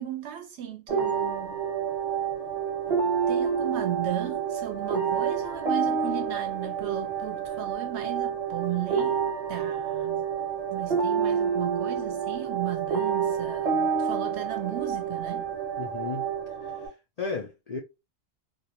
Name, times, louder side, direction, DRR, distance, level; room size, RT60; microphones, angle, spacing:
voice 1, 0.0-1.6 3.3-9.2 9.5-10.3 10.7-15.5, right 11 dB, 65° right, 0.8 m, -35 dB
sound 1, 0.9-16.9, right 7 dB, 35° right, 0.7 m, -28 dB
voice 2, 15.8-16.3 16.6-16.9 17.2-17.8, left 4 dB, 65° left, 0.4 m, -34 dB
2.4 x 2.1 x 2.9 m
omnidirectional pair, 1.3 m